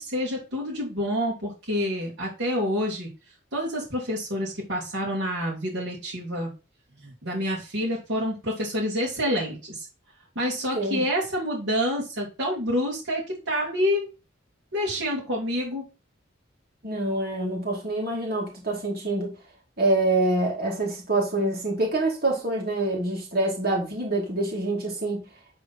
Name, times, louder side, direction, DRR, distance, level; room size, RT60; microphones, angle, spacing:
voice 1, 0.0-3.1 3.5-6.5 7.0-9.9 10.3-14.1 14.7-15.8, equal, 70° right, 2.5 m, -28 dB
voice 2, 16.8-19.3 19.8-25.2, right 2 dB, 50° right, 2.2 m, -26 dB
9.9 x 3.8 x 4.3 m
head